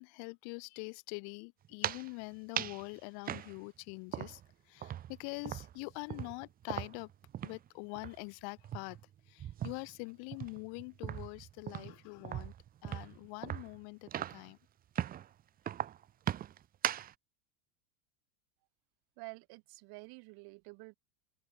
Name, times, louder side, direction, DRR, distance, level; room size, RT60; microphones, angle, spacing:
voice 1, 0.0-4.4 4.7-7.1 7.4-9.0 9.3-12.5 12.8-14.6, left 34 dB, 60° left, 4.1 m, -44 dB
sound 1, 1.6-2.1 2.6-2.8 3.3-4.5 4.8-7.7 8.0-8.2 8.6-10.0 10.3-14.5 15.0-15.3 15.7-17.1, right 11 dB, 20° right, 0.5 m, -39 dB
voice 2, 19.2-21.0, right 29 dB, 55° right, 5.6 m, -49 dB
hypercardioid pair, 105°, 44 cm